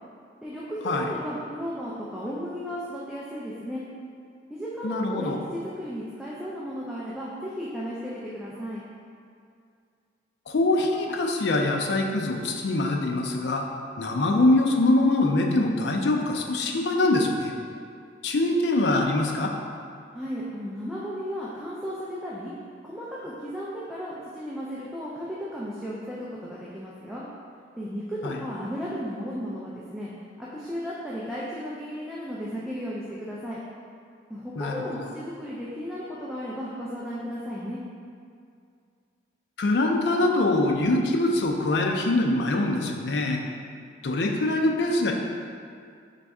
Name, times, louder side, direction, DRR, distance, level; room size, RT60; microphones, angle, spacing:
voice 1, 0.4-3.8 4.5-8.8 20.1-22.5 22.8-27.2 27.8-30.1 30.4-33.6 34.3-37.8, equal, 5° right, -8 dB, 0.4 m, -34 dB
voice 2, 4.8-5.4 10.5-13.7 14.0-17.5 18.2-19.5 28.2-28.4 34.6-35.1 39.6-43.4 44.0-45.1, left 2 dB, 65° left, 2 dB, 0.4 m, -23 dB
4.0 x 3.2 x 3.5 m, 2.3 s
head